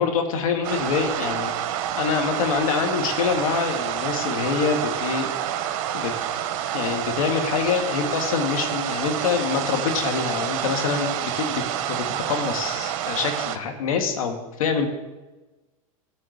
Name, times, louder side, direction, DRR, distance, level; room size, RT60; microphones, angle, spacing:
voice 1, 0.0-1.5 2.0-5.3 5.9-6.1 6.7-14.9, left 6 dB, 80° left, 4 dB, 1.9 m, -25 dB
sound 1, 0.6-13.6, right 10 dB, 60° right, 0.9 m, -28 dB
13.0 x 4.5 x 7.9 m, 1.2 s
hypercardioid pair, 105°, 18 cm